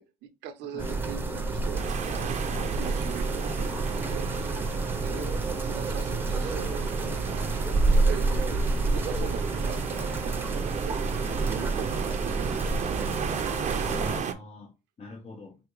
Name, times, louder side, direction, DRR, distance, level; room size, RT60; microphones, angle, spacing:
voice 1, 0.0-2.3 2.7-4.5 5.0-5.3 5.7-11.0 11.4-13.1, right 9 dB, 90° right, 0.7 m, -42 dB
sound 1, 0.8-14.2, right 3 dB, 15° right, 0.8 m, -28 dB
sound 2, 1.7-14.3, right 8 dB, 45° right, 0.6 m, -36 dB
voice 2, 13.8-15.6, left 4 dB, 35° left, 0.9 m, -43 dB
5.0 x 2.7 x 3.0 m
cardioid pair, 110°, 17 cm